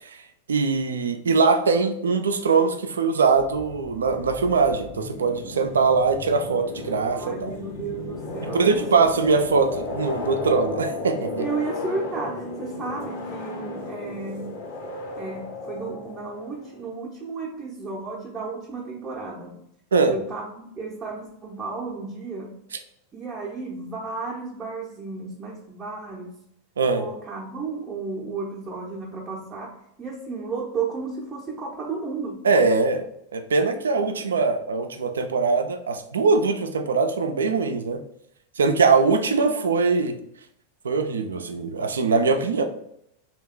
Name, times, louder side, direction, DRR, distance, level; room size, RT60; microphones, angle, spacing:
voice 1, 0.5-7.5 8.5-11.4 19.9-20.1 26.8-27.0 32.4-33.1 33.3-38.0 38.6-40.2 40.8-42.6, right 4 dB, 70° right, 7 dB, 0.4 m, -22 dB
sound 1, 3.4-16.8, left 2 dB, 55° left, 0.7 m, -35 dB
voice 2, 7.1-9.1 11.4-14.5 15.2-19.6 20.1-22.6 23.1-26.3 26.9-32.4 39.3-39.7, right 4 dB, 20° right, -4 dB, 0.6 m, -33 dB
3.0 x 2.3 x 3.6 m, 0.75 s
figure-of-eight pair, 90°, 0 cm